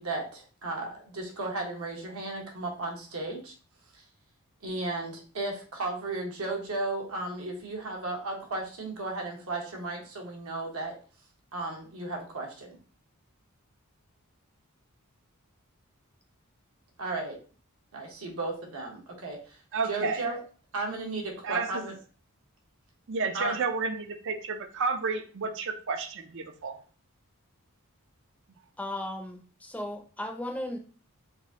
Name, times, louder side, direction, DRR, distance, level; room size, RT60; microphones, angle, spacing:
voice 1, 0.0-3.5 3.9-4.0 4.6-11.0 11.5-12.8 17.0-17.4 17.9-19.6 19.8-20.4 20.7-21.9 23.3-23.6, right 2 dB, 75° right, 0 dB, 1.2 m, -34 dB
voice 2, 19.7-20.2 21.4-21.7 23.1-26.8, right 4 dB, 55° right, 8 dB, 0.5 m, -31 dB
voice 3, 28.8-30.8, left 1 dB, 5° left, 3 dB, 0.5 m, -36 dB
3.9 x 2.6 x 3.6 m, 0.39 s
head